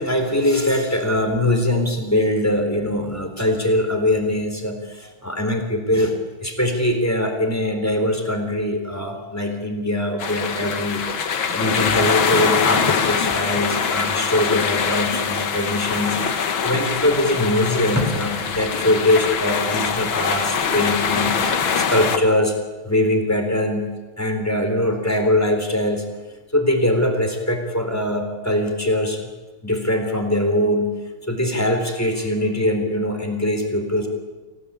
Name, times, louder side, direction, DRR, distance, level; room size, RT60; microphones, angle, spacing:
voice 1, 0.0-11.2 11.5-22.5 22.8-23.9 24.2-26.1 26.5-29.2 29.6-30.9 31.3-34.1, left 1 dB, 5° left, 4 dB, 3.9 m, -22 dB
sound 1, 10.2-22.2, left 6 dB, 75° left, 2.3 m, -23 dB
27.5 x 17.5 x 8.8 m, 1.2 s
omnidirectional pair, 2.2 m